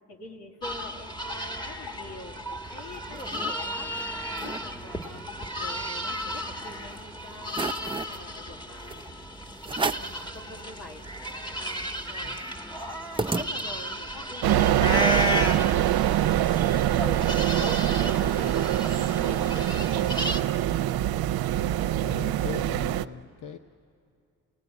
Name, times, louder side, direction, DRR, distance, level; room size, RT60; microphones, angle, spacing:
voice 1, 0.1-5.2 5.6-9.2 9.6-11.0 11.5-12.4 13.2-16.1 16.5-19.7, left 1 dB, 80° left, 1 dB, 2.2 m, -44 dB
sound 1, 0.6-20.4, equal, 10° left, 1.3 m, -34 dB
sound 2, 2.7-3.5 4.0-4.1 4.3-4.6 5.0-6.6 7.0-7.1 7.5-8.2 8.9-9.0 9.6-10.2 10.7-10.8 11.0-14.0, right 3 dB, 15° right, 0.6 m, -34 dB
sound 3, 14.4-23.1, right 12 dB, 70° right, 0.6 m, -24 dB
voice 2, 22.0-23.6, left 8 dB, 55° left, 8 dB, 0.9 m, -39 dB
30.0 x 18.0 x 9.5 m, 2.4 s
supercardioid pair, 60°, 38 cm